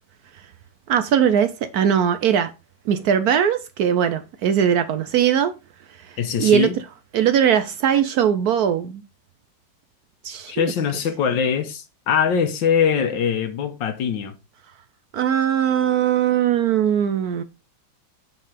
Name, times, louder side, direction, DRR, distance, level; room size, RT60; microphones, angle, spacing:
voice 1, 0.9-2.5 2.9-5.5 6.0-6.1 6.4-6.7 7.1-9.0 10.2-10.7 15.1-17.4, right 9 dB, 70° right, 1.0 m, -20 dB
voice 2, 6.2-6.8 10.5-14.4, left 7 dB, 80° left, 1.8 m, -22 dB
8.6 x 3.9 x 4.9 m
omnidirectional pair, 2.0 m